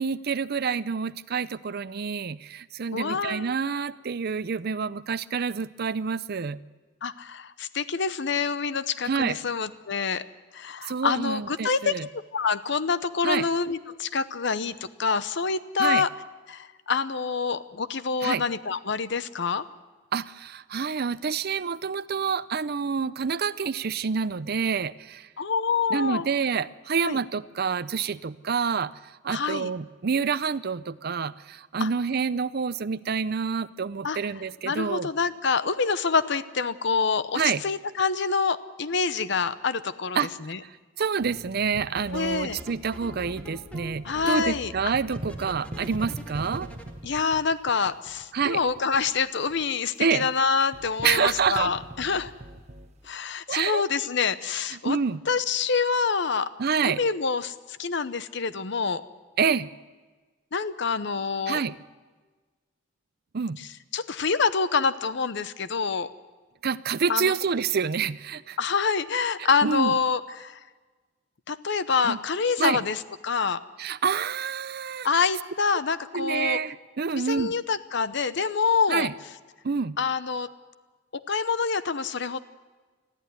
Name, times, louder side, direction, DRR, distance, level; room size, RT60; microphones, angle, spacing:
voice 1, 0.0-6.6 9.1-9.4 10.9-12.1 13.2-13.4 15.8-16.0 18.2-18.4 20.1-25.3 25.9-28.9 29.2-35.1 37.3-37.6 40.2-40.3 41.0-46.7 48.3-48.6 50.0-50.3 51.0-51.7 53.5-53.8 54.8-55.2 56.6-57.0 59.4-59.7 61.5-61.7 63.3-63.6 66.6-68.6 69.4-70.0 72.0-72.2 72.6-72.8 73.8-75.1 76.1-77.5 78.9-79.1 79.6-80.0, right 6 dB, 55° right, 17 dB, 0.5 m, -27 dB
voice 2, 2.9-3.5 7.0-10.2 10.5-12.0 12.3-16.1 16.5-19.6 25.4-26.2 27.0-27.2 29.3-29.7 31.8-31.9 34.0-34.2 34.6-40.6 42.1-42.6 44.0-44.9 47.0-52.3 53.1-55.0 55.3-56.5 56.8-59.0 60.5-61.6 63.6-63.7 63.9-66.1 67.1-67.3 68.6-70.6 71.5-73.6 75.0-76.6 77.1-79.1 80.0-80.5 81.3-82.4, left 5 dB, 65° left, 14 dB, 0.8 m, -26 dB
sound 1, 41.2-41.6 42.0-46.9, left 1 dB, 5° left, 2.0 m, -42 dB
sound 2, 41.7-44.1 44.5-49.2 49.5-49.6 50.1-53.1, right 1 dB, 35° right, 1.1 m, -42 dB
20.5 x 14.0 x 9.6 m, 1.3 s
head